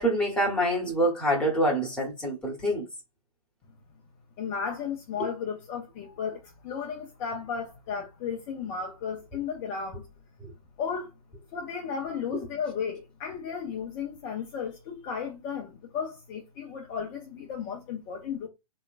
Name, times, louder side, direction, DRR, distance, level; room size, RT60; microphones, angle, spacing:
voice 1, 0.0-2.8 5.2-5.3 10.4-10.5, right 1 dB, 5° left, 1.1 m, -26 dB
voice 2, 4.4-10.1 10.8-11.1 11.5-18.5, left 6 dB, 30° left, 0.6 m, -34 dB
3.1 x 2.9 x 2.4 m
figure-of-eight pair, 110°, 19 cm